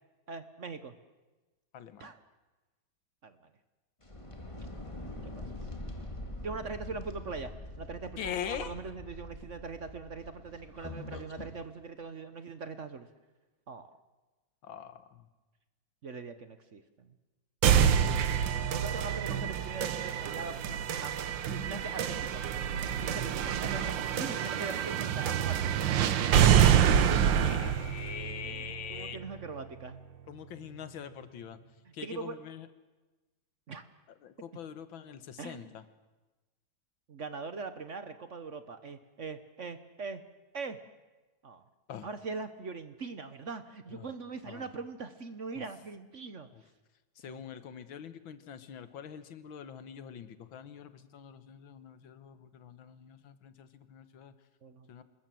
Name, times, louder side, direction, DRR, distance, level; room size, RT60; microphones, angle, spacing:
voice 1, 0.3-0.9 2.0-2.2 3.2-3.4 5.4-5.5 6.4-7.5 7.8-13.1 13.7-13.9 16.0-17.1 18.7-21.1 21.5-22.4 23.0-25.8 28.4-30.0 31.8-32.4 33.7-33.8 35.4-35.7 37.1-40.2 40.5-40.8 41.4-41.6 42.0-46.5 47.3-47.4 54.6-54.9, right 4 dB, 45° right, 10 dB, 1.2 m, -41 dB
voice 2, 1.7-2.1 8.2-8.7 14.6-15.3 17.7-18.0 18.4-18.6 27.4-29.2 30.3-31.6 31.9-32.7 34.2-35.8 41.9-42.1 43.9-44.1 44.5-44.7 45.6-45.7 46.5-46.6 47.2-54.3 54.9-55.0, left 8 dB, 85° left, 11 dB, 2.0 m, -43 dB
sound 1, 4.0-11.6, left 1 dB, 15° left, 2.0 m, -44 dB
sound 2, 17.6-29.6, right 9 dB, 75° right, 1.7 m, -27 dB
26.0 x 21.0 x 7.7 m, 1.2 s
omnidirectional pair, 2.1 m